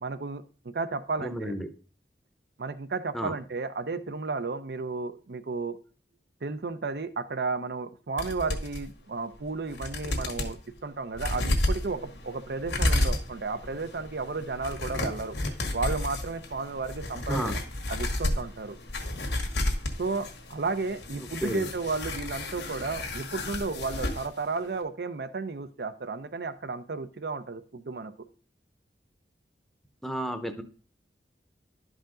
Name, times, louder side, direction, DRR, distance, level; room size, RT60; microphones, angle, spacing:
voice 1, 0.0-1.6 2.6-5.8 6.4-15.3 15.7-17.6 17.9-18.8 20.0-28.1, right 4 dB, 65° right, 13 dB, 0.6 m, -33 dB
voice 2, 1.2-1.7 3.1-3.3 17.3-17.6 21.1-21.7 30.0-30.6, equal, ahead, 7 dB, 0.7 m, -32 dB
sound 1, 8.2-8.8 9.4-9.5 9.7-10.5 11.1-24.3 24.6-24.7, left 1 dB, 90° left, 1.6 m, -32 dB
11.5 x 5.0 x 3.8 m, 0.39 s
head